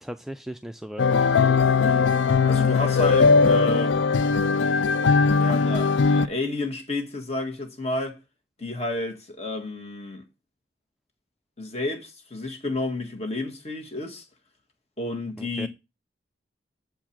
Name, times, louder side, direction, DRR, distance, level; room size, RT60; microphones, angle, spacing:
voice 1, 0.0-1.3 15.4-15.7, equal, ahead, 0.3 m, -37 dB
sound 1, 1.0-6.3, left 5 dB, 90° left, 0.4 m, -19 dB
voice 2, 2.5-4.0 5.4-8.2 8.6-10.2 11.6-14.3 15.0-15.7, left 2 dB, 35° left, 1.6 m, -30 dB
7.3 x 4.7 x 5.8 m
head